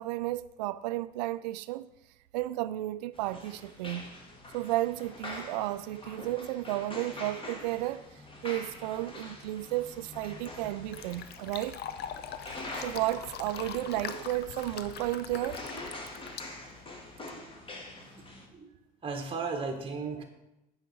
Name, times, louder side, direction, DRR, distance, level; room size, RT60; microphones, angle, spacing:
voice 1, 0.0-1.9 2.3-4.1 4.5-8.1 8.4-11.8 12.5-15.6, right 16 dB, 85° right, 0.4 m, -33 dB
sound 1, 3.1-18.5, left 1 dB, 25° left, 2.2 m, -45 dB
Fill (with liquid), 10.1-17.2, left 9 dB, 50° left, 0.7 m, -43 dB
voice 2, 19.0-20.2, right 4 dB, 25° right, 1.5 m, -35 dB
9.1 x 4.9 x 6.1 m
supercardioid pair, 80°, 21 cm